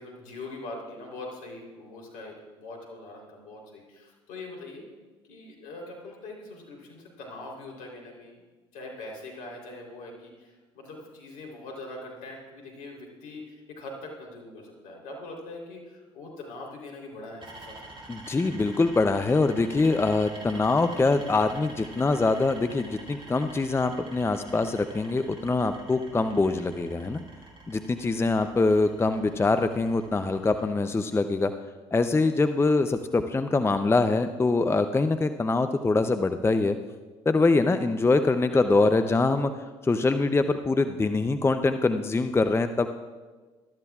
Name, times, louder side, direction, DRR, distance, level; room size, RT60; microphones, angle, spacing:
voice 1, 0.0-4.8 5.2-8.4 8.7-17.7 38.5-38.7 39.0-39.5, left 2 dB, 65° left, 0 dB, 3.6 m, -42 dB
sound 1, 17.4-30.6, right 2 dB, 35° right, 4.7 m, -47 dB
voice 2, 18.1-27.2 27.7-31.5 31.9-36.8 37.3-39.5 39.8-42.9, left 3 dB, 15° left, 9 dB, 0.6 m, -24 dB
21.0 x 13.0 x 2.4 m, 1.3 s
hypercardioid pair, 60°, 15 cm